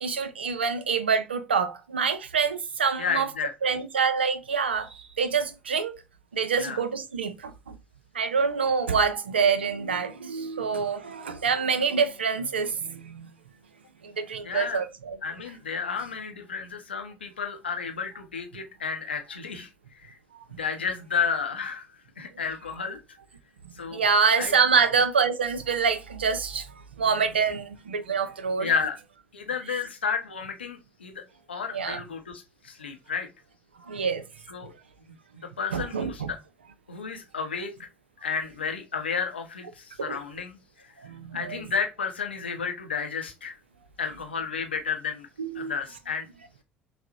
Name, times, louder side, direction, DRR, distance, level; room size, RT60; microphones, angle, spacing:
voice 1, 0.0-3.3 3.6-6.0 6.3-7.8 8.1-13.3 14.0-15.2 23.6-26.7 27.0-28.7 31.7-32.0 33.9-34.3 35.7-36.3 40.0-40.2 41.0-41.6 45.4-45.7, right 5 dB, 85° right, 0.4 m, -26 dB
voice 2, 3.0-3.8 6.6-6.8 14.4-14.8 15.2-19.7 20.0-20.2 20.5-21.9 22.2-23.0 23.8-24.0 24.4-24.5 28.6-29.0 29.3-31.2 31.5-33.3 34.5-34.7 35.6-36.4 36.9-37.7 38.2-40.6 41.3-43.5 44.0-45.3 45.5-46.3, left 6 dB, 90° left, 0.5 m, -31 dB
5.7 x 2.0 x 2.7 m
figure-of-eight pair, 55°, 6 cm